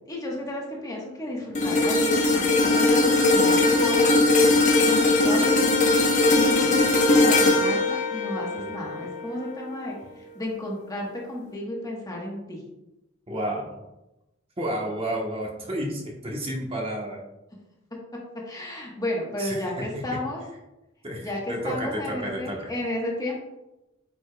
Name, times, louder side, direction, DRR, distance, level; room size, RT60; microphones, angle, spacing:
voice 1, 0.1-4.2 4.8-5.7 6.3-12.6 18.4-20.4 21.2-23.4, left 1 dB, 20° left, -3 dB, 1.3 m, -32 dB
sound 1, 1.5-9.9 10.3-10.5, left 2 dB, 40° left, 1.0 m, -20 dB
voice 2, 13.3-13.8 14.6-17.2 19.4-19.9 21.0-22.7, right 1 dB, 30° right, -2 dB, 1.2 m, -31 dB
8.5 x 5.1 x 2.3 m, 0.95 s
head